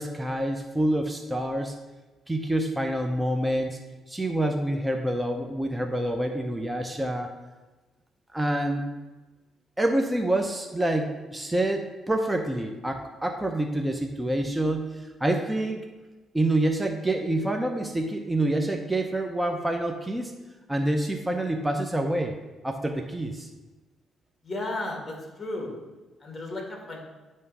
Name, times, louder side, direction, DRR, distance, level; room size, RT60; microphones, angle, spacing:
voice 1, 0.0-1.7 2.3-3.8 4.1-7.3 8.3-8.8 9.8-15.8 16.3-20.3 20.7-22.3 22.6-23.5, right 1 dB, 10° right, 4 dB, 0.7 m, -27 dB
voice 2, 24.4-25.7 26.2-27.0, left 2 dB, 20° left, 1 dB, 2.0 m, -34 dB
9.2 x 3.2 x 5.5 m, 1.2 s
cardioid pair, 90°, 0 cm